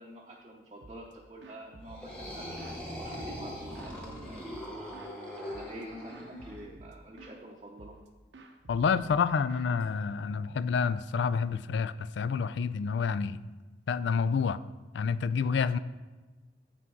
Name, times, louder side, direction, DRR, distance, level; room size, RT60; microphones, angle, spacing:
voice 1, 0.0-4.5 5.4-8.0, right 1 dB, 30° right, -2 dB, 0.7 m, -48 dB
sound 1, 0.8-1.1 1.4-2.8 3.2-5.2 5.5-5.8 6.1-7.4 7.8-8.1 8.3-10.4, right 2 dB, 85° right, 0.7 m, -52 dB
sound 2, 1.8-6.6, equal, 5° left, 1.4 m, -41 dB
voice 2, 8.7-13.4 13.9-14.6 14.9-15.8, left 5 dB, 80° left, 15 dB, 0.3 m, -28 dB
8.2 x 6.1 x 4.6 m, 1.2 s
head